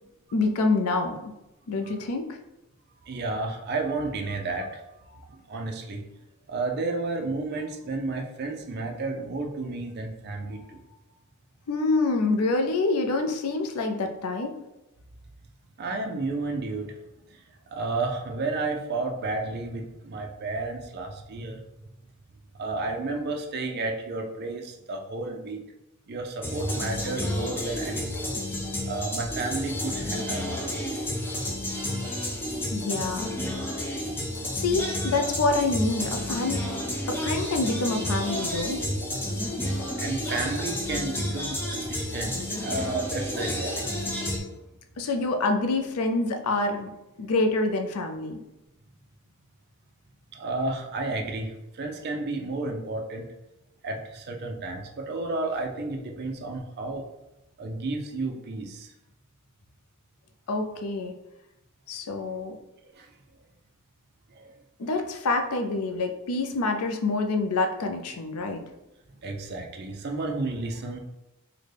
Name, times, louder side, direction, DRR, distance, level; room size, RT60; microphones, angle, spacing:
voice 1, 0.3-1.2 1.7-2.4 11.7-14.5 32.7-33.3 34.5-36.8 37.1-38.8 45.0-46.9 47.2-48.4 60.5-61.1 61.9-62.6 64.8-68.6, left 3 dB, 85° left, 5 dB, 0.5 m, -26 dB
voice 2, 3.1-4.8 5.1-6.0 6.5-10.8 15.8-16.9 17.7-21.6 22.6-25.6 26.1-28.4 28.9-30.7 37.3-37.4 40.0-44.0 50.3-53.3 53.8-57.0 57.6-58.9 63.0-63.1 64.4-64.5 69.2-71.0, right 3 dB, 50° right, 2 dB, 0.5 m, -32 dB
sound 1, 26.4-44.4, left 1 dB, 10° left, 0.5 m, -31 dB
3.9 x 2.2 x 3.3 m, 0.94 s
head